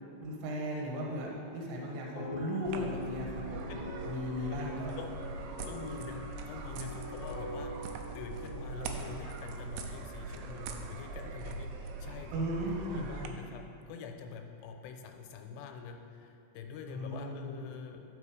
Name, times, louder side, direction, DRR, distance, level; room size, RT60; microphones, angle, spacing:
voice 1, 0.2-3.7 4.1-4.9 12.3-13.1 16.9-17.6, equal, 65° right, -2 dB, 2.6 m, -36 dB
sound 1, 2.2-9.0, left 2 dB, 65° left, 1.9 m, -44 dB
sound 2, 2.7-13.3, right 3 dB, 90° right, 2.8 m, -42 dB
voice 2, 5.6-7.7 8.1-18.0, left 6 dB, 85° left, 4 dB, 2.8 m, -46 dB
11.5 x 5.1 x 4.8 m, 2.8 s
omnidirectional pair, 4.9 m